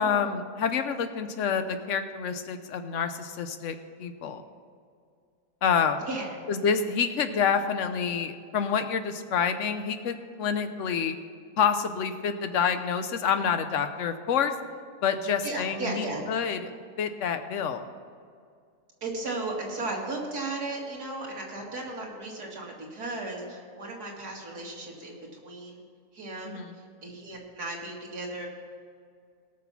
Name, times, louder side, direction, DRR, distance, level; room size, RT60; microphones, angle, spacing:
voice 1, 0.0-4.4 5.6-6.1 6.5-11.1 11.6-14.5 15.0-16.7 17.0-17.8 26.5-26.7, left 6 dB, 55° left, 9 dB, 1.0 m, -28 dB
voice 2, 6.1-6.4 15.4-16.2 19.0-25.8 26.1-28.5, right 2 dB, 70° right, -2 dB, 2.7 m, -35 dB
18.5 x 6.4 x 5.9 m, 2.2 s
omnidirectional pair, 1.7 m